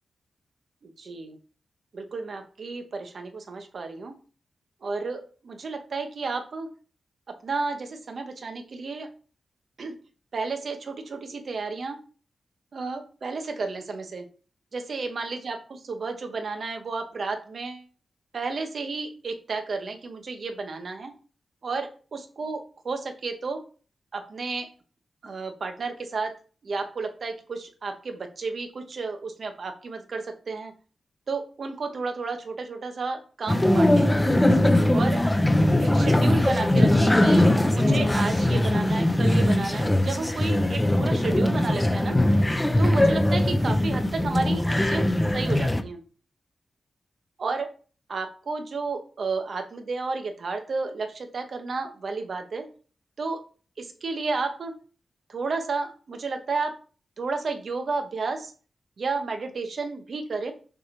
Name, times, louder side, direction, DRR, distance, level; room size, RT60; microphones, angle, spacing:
voice 1, 0.8-1.4 1.9-4.1 4.8-6.7 7.3-9.1 9.8-9.9 10.3-12.0 12.7-14.3 14.7-17.8 18.3-21.1 21.6-23.6 24.1-24.7 25.2-30.7 31.3-34.1 34.9-35.3 35.8-42.2 42.8-46.0 47.4-47.7 48.1-52.7 53.2-53.4 53.8-54.8 55.3-56.8 57.2-58.5 59.0-60.5, right 4 dB, 60° right, 6 dB, 1.0 m, -32 dB
sound 1, 33.5-45.8, left 1 dB, 15° left, 0.6 m, -21 dB
6.9 x 3.5 x 4.4 m, 0.39 s
wide cardioid pair, 95°, 0 cm